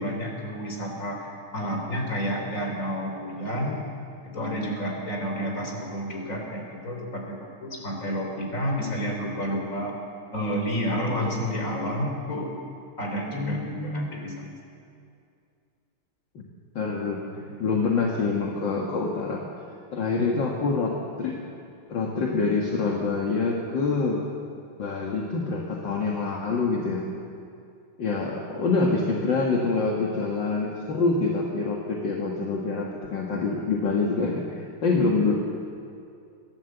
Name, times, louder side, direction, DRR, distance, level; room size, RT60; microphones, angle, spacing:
voice 1, 0.0-3.8 4.2-9.9 10.3-12.5 13.0-14.3 17.4-17.8 20.2-20.5, equal, 35° left, 0 dB, 4.0 m, -30 dB
voice 2, 13.3-14.1 16.4-16.5 16.8-17.2 17.6-19.4 19.9-21.4 21.9-24.2 24.8-27.0 28.0-35.3, left 4 dB, 60° left, -1 dB, 2.4 m, -26 dB
28.0 x 12.0 x 8.1 m, 2.4 s
omnidirectional pair, 2.3 m